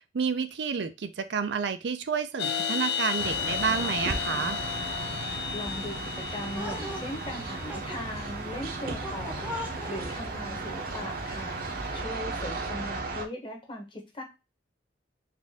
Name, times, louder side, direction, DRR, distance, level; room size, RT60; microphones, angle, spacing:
voice 1, 0.1-4.6, right 6 dB, 70° right, 10 dB, 0.5 m, -30 dB
sound 1, 2.4-8.0, left 7 dB, 65° left, 0.5 m, -33 dB
sound 2, 3.2-13.3, right 3 dB, 50° right, 0.8 m, -35 dB
voice 2, 5.5-9.5 9.9-11.6 11.9-14.2, left 1 dB, 25° left, 2 dB, 1.1 m, -39 dB
sound 3, 6.6-12.0, left 1 dB, 10° right, 0.9 m, -42 dB
4.1 x 2.6 x 3.5 m, 0.26 s
head